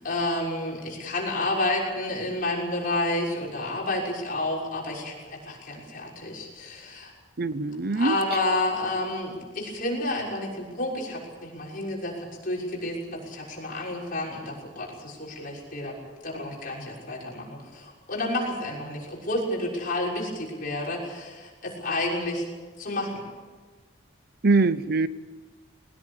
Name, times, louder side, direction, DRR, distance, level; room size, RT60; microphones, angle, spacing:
voice 1, 0.0-7.1 7.9-16.0 16.2-22.4 22.8-23.2, left 2 dB, 45° left, -3 dB, 6.4 m, -30 dB
voice 2, 7.4-8.2 24.4-25.1, right 3 dB, 55° right, 15 dB, 0.8 m, -22 dB
22.0 x 19.5 x 8.5 m, 1.3 s
head